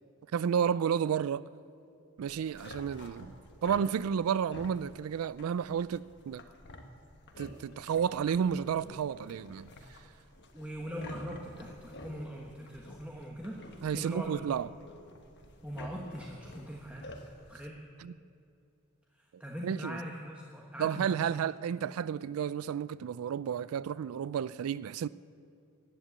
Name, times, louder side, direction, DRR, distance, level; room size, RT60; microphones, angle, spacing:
voice 1, 0.3-1.4 2.2-3.3 3.6-6.4 7.4-9.7 13.8-14.7 18.0-18.1 19.6-20.0 20.8-25.1, right 8 dB, 85° right, 0.3 m, -31 dB
sound 1, 2.2-17.6, left 1 dB, 55° left, 1.3 m, -50 dB
voice 2, 10.5-14.4 15.6-17.0 17.5-17.8 19.4-21.2, equal, 5° right, 1.2 m, -41 dB
15.0 x 10.0 x 8.5 m
head